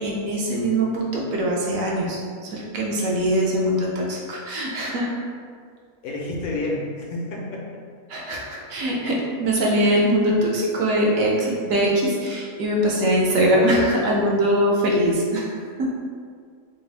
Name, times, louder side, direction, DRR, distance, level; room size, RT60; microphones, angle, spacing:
voice 1, 0.0-5.3 8.1-15.9, equal, 70° right, -3 dB, 0.9 m, -22 dB
voice 2, 6.0-7.8, left 2 dB, 80° left, -2 dB, 1.1 m, -29 dB
3.4 x 2.4 x 3.3 m, 2.1 s
omnidirectional pair, 1.6 m